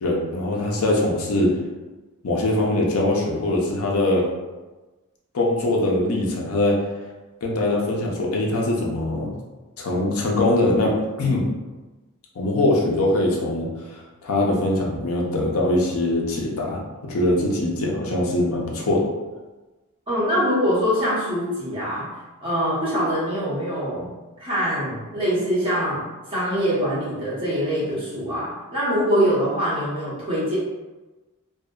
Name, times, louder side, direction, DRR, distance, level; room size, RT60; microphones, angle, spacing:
voice 1, 0.0-1.5 2.2-4.2 5.3-6.8 7.4-9.3 9.8-11.4 12.4-13.7 14.2-16.8 17.1-19.0, left 1 dB, 75° left, -2 dB, 0.5 m, -22 dB
voice 2, 20.1-22.1 22.4-24.1 24.4-30.6, equal, 25° right, -9 dB, 0.8 m, -24 dB
2.6 x 2.1 x 2.3 m, 1.2 s
head